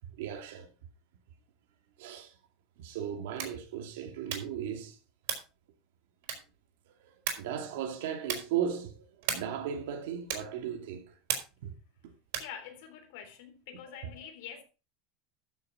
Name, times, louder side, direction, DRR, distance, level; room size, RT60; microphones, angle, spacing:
voice 1, 0.0-0.7 2.0-2.3 2.8-5.0 7.0-11.2 11.6-11.7, right 9 dB, 80° right, 2.5 m, -36 dB
sound 1, 3.3-3.7 4.2-4.6 5.2-5.6 6.2-6.6 7.2-7.6 8.2-8.6 9.2-9.6 10.3-10.6 11.3-11.7 12.3-12.6, right 8 dB, 60° right, 3.9 m, -36 dB
voice 2, 12.4-14.6, left 9 dB, 60° left, 3.6 m, -46 dB
13.5 x 6.8 x 4.7 m
supercardioid pair, 175°, 0 cm